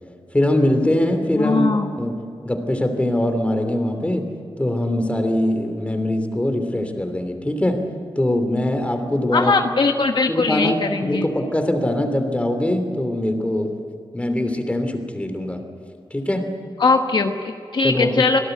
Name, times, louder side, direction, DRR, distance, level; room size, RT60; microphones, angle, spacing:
voice 1, 0.3-2.1 2.4-4.3 4.6-7.8 8.2-9.5 10.3-13.7 14.1-15.6 16.1-16.5 17.8-18.2, left 1 dB, 15° left, 6 dB, 3.0 m, -22 dB
voice 2, 1.3-1.9 9.3-11.3 16.8-18.4, left 4 dB, 60° left, 5 dB, 1.2 m, -20 dB
26.0 x 18.0 x 8.0 m, 2.6 s
wide cardioid pair, 110°, 9 cm